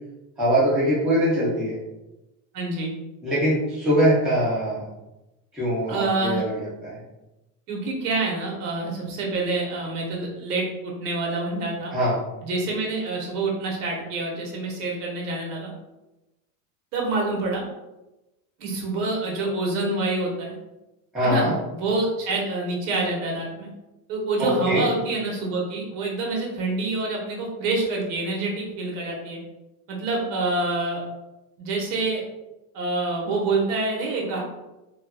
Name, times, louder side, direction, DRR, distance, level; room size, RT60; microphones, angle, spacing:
voice 1, 0.4-1.8 3.2-4.8 5.5-7.0 11.9-12.2 21.1-21.5 24.4-24.9, equal, ahead, -10 dB, 0.4 m, -22 dB
voice 2, 2.5-2.9 5.9-6.4 7.7-11.9 12.4-15.7 16.9-17.6 18.6-20.5 21.2-23.7 24.1-29.4 29.9-31.0 31.6-32.2 32.7-34.4, right 2 dB, 90° right, -1 dB, 1.0 m, -27 dB
2.8 x 2.2 x 2.3 m, 1.0 s
cardioid pair, 160°, 45 cm